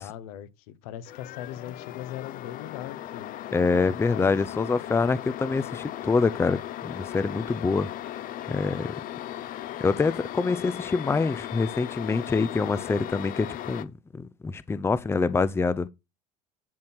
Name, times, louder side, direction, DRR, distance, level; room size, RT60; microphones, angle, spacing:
voice 1, 0.0-3.3 3.7-4.3, left 12 dB, 75° left, 1.3 m, -40 dB
sound 1, 1.0-13.8, left 12 dB, 45° left, 0.8 m, -37 dB
voice 2, 3.5-7.9 8.5-8.9 9.8-15.9, left 4 dB, 15° left, 0.6 m, -25 dB
11.0 x 4.3 x 6.2 m
supercardioid pair, 105°, 19 cm